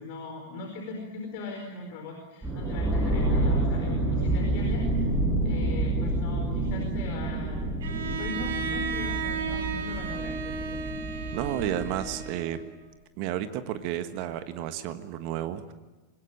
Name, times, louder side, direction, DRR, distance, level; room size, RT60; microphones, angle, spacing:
voice 1, 0.0-5.1 5.4-7.7 7.9-11.0, left 2 dB, 50° left, 3 dB, 4.6 m, -39 dB
sound 1, 2.4-12.2, right 2 dB, 10° right, 6.6 m, -28 dB
Bowed string instrument, 7.8-12.8, right 5 dB, 60° right, 2.8 m, -34 dB
voice 2, 11.3-12.7 13.2-15.7, right 11 dB, 45° right, 10 dB, 1.5 m, -32 dB
25.0 x 21.5 x 9.0 m, 1.2 s
figure-of-eight pair, 90°, 0 cm